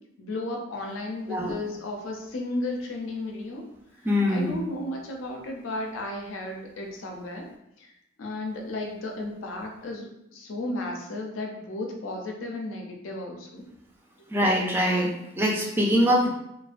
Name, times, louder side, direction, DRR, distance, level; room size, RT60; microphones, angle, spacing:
voice 1, 0.2-3.6 4.3-7.4 7.8-7.9 8.2-13.7, left 2 dB, 85° left, 1 dB, 0.5 m, -34 dB
voice 2, 4.0-4.6 14.3-16.3, equal, 10° right, -3 dB, 0.3 m, -23 dB
2.4 x 2.1 x 2.4 m, 0.84 s
head